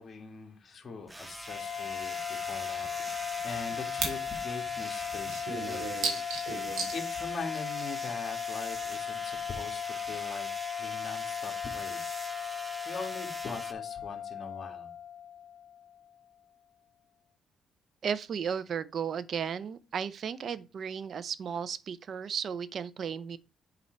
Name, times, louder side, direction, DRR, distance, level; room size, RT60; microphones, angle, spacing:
voice 1, 0.0-6.0 6.9-10.5 10.8-12.2 12.6-14.9, left 4 dB, 35° left, 1.8 m, -42 dB
sound 1, 1.1-13.7, right 1 dB, 10° right, 0.7 m, -42 dB
sound 2, 1.5-16.1, left 9 dB, 80° left, 0.9 m, -37 dB
sound 3, 1.6-1.7 2.0-2.1 2.4-2.5 2.8-4.2 4.5-4.6 5.0-6.9, right 5 dB, 80° right, 2.2 m, -35 dB
voice 2, 18.0-23.4, right 7 dB, 55° right, 0.5 m, -34 dB
7.3 x 3.8 x 4.5 m
cardioid pair, 90°, 0 cm